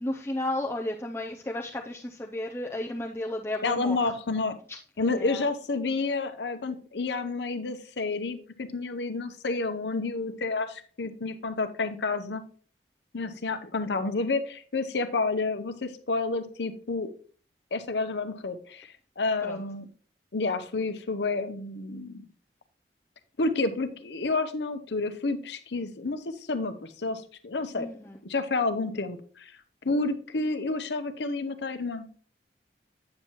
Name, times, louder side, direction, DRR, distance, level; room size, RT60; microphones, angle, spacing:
voice 1, 0.0-4.1 4.7-5.5 19.4-19.6 27.7-28.2, left 1 dB, 15° left, 0.4 m, -34 dB
voice 2, 3.6-4.6 5.0-12.4 13.1-17.1 17.7-18.9 19.2-19.8 20.3-22.3 23.4-27.9 28.2-29.5 29.8-32.1, left 3 dB, 75° left, 0.8 m, -30 dB
8.7 x 7.2 x 3.0 m
head